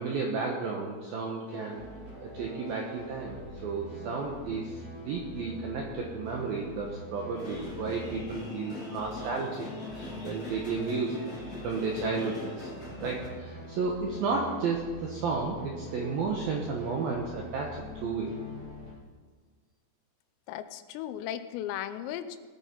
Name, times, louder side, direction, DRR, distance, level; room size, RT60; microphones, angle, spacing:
voice 1, 0.0-1.8 2.2-3.4 3.6-11.3 11.6-12.7 13.0-18.3, right 4 dB, 75° right, 0 dB, 2.1 m, -33 dB
sound 1, 1.5-18.9, left 1 dB, 35° right, 6.0 m, -44 dB
sound 2, 7.3-13.3, left 2 dB, 35° left, 4.1 m, -43 dB
voice 2, 20.5-22.4, left 11 dB, 85° left, 11 dB, 3.3 m, -36 dB
20.0 x 9.0 x 4.5 m, 1.5 s
omnidirectional pair, 5.9 m